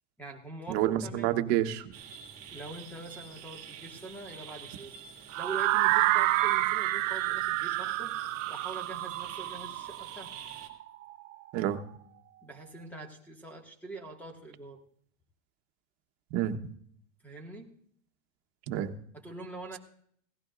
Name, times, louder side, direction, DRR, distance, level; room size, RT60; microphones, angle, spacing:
voice 1, 0.2-1.3 2.5-5.0 5.4-8.1 8.5-10.3 12.4-14.8 17.2-17.7 19.1-19.8, right 2 dB, 5° left, 2 dB, 2.0 m, -44 dB
voice 2, 0.7-1.9 11.5-11.8 16.3-16.6 18.7-19.0, right 12 dB, 55° right, 6 dB, 1.3 m, -28 dB
sound 1, 1.9-10.7, right 7 dB, 25° right, 2.7 m, -47 dB
sound 2, 5.3-11.3, right 17 dB, 85° right, 0.7 m, -29 dB
17.5 x 15.0 x 2.6 m, 0.63 s
supercardioid pair, 155°, 38 cm